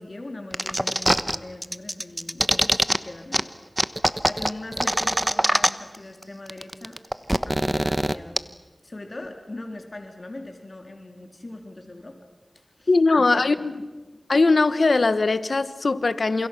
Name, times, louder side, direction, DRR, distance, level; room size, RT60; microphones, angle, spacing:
voice 1, 0.0-3.6 4.2-7.0 7.4-8.5 8.8-12.2 12.5-13.7, left 2 dB, 55° left, 4 dB, 3.5 m, -40 dB
sound 1, 0.5-1.4 1.6-3.0 3.3-3.4 3.8-6.0 6.2-6.3 6.5-8.4, right 1 dB, 15° right, 1.2 m, -22 dB
voice 2, 12.9-13.7 14.3-16.5, left 3 dB, 85° left, 13 dB, 1.3 m, -20 dB
29.5 x 28.0 x 6.1 m, 1.3 s
wide cardioid pair, 50°, 0 cm